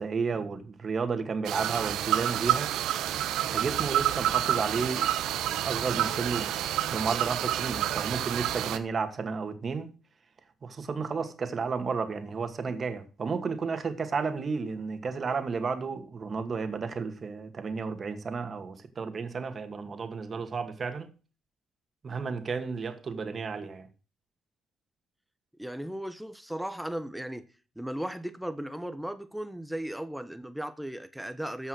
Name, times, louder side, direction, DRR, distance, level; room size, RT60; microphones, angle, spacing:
voice 1, 0.0-2.7 3.5-5.1 5.6-6.5 6.9-9.9 10.6-21.1 22.0-23.9, right 5 dB, 45° right, 2.1 m, -32 dB
sound 1, 1.4-8.8, right 11 dB, 90° right, 1.0 m, -29 dB
voice 2, 25.6-27.5 27.8-31.7, right 1 dB, 5° right, 1.1 m, -36 dB
14.5 x 5.5 x 6.4 m
cardioid pair, 90°, 0 cm